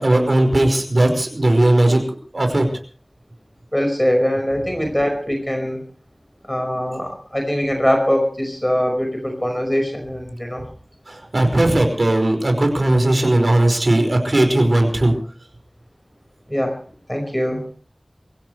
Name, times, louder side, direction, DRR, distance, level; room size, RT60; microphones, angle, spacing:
voice 1, 0.0-2.0 2.3-2.7 11.1-15.1, right 1 dB, 60° right, 4 dB, 5.4 m, -17 dB
voice 2, 3.7-5.8 6.5-10.6 16.5-16.8 17.1-17.6, equal, 15° left, 3 dB, 5.3 m, -22 dB
24.0 x 16.5 x 3.3 m, 0.43 s
wide cardioid pair, 55°, 0 cm